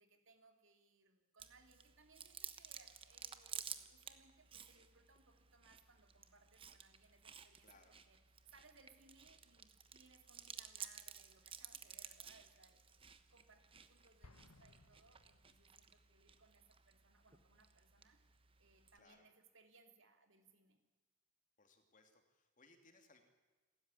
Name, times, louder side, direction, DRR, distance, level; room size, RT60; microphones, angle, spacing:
voice 1, 0.0-8.2 8.5-13.0 13.3-18.2 18.6-20.8, right 3 dB, 55° right, 5 dB, 3.0 m, -68 dB
Chewing mastication, 1.4-19.0, right 8 dB, 25° right, 1.1 m, -55 dB
voice 2, 7.6-8.0 18.9-19.3 21.6-23.2, left 3 dB, 35° left, 5 dB, 2.7 m, -67 dB
Explosion, 14.2-16.1, left 2 dB, 80° left, 1.4 m, -64 dB
28.5 x 13.5 x 9.9 m, 1.2 s
head